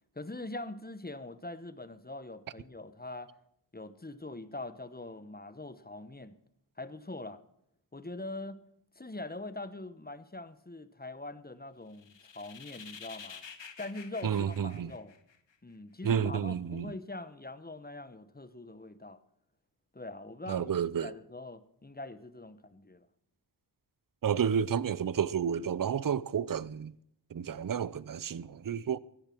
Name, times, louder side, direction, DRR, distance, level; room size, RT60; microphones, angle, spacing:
voice 1, 0.1-3.3 3.7-6.3 6.8-7.4 7.9-8.6 8.9-13.4 13.8-15.1 15.6-19.2 19.9-20.7 21.0-23.1, left 2 dB, 20° left, 0.9 m, -43 dB
sound 1, 11.9-15.5, left 6 dB, 75° left, 1.2 m, -49 dB
voice 2, 14.2-14.9 16.0-16.9 20.5-21.1 24.2-26.9 27.3-29.0, right 8 dB, 50° right, 0.6 m, -31 dB
15.0 x 10.5 x 6.0 m
cardioid pair, 45°, 44 cm